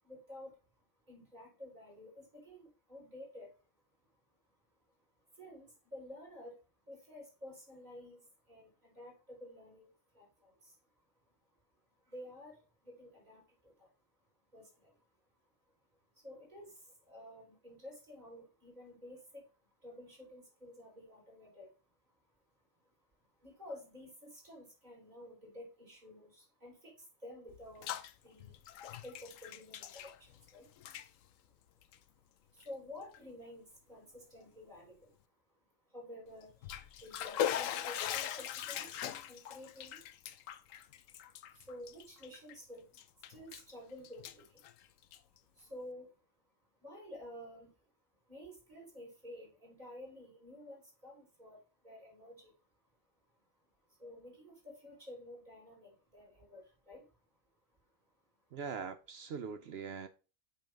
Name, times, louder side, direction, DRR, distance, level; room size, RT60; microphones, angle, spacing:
voice 1, 0.0-3.7 4.0-6.6 6.9-11.4 11.7-13.9 14.5-15.2 15.4-31.1 31.4-53.0 53.3-57.4 57.8-58.6, left 1 dB, 35° right, 4.7 m, -53 dB
Bathtub (filling or washing), 27.5-28.1 28.4-30.5 30.8-31.1 31.8-32.0 32.6-32.7 33.1-33.2 36.4-42.5 42.9-43.7 44.0-45.4, left 10 dB, 90° left, 1.0 m, -40 dB
voice 2, 58.5-60.1, right 6 dB, 60° right, 0.8 m, -42 dB
8.5 x 3.4 x 5.1 m
omnidirectional pair, 1.3 m